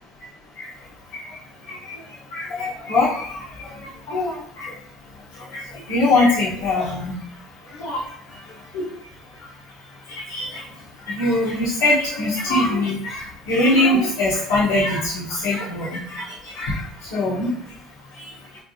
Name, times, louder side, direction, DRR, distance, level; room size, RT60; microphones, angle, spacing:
voice 1, 1.7-2.0 2.3-4.7 5.3-7.1 7.6-8.5 8.7-8.8 10.1-10.6 11.0-17.5 18.1-18.3, left 2 dB, 85° left, -9 dB, 1.2 m, -23 dB
4.3 x 3.4 x 2.8 m, 0.67 s
cardioid pair, 125°, 0 cm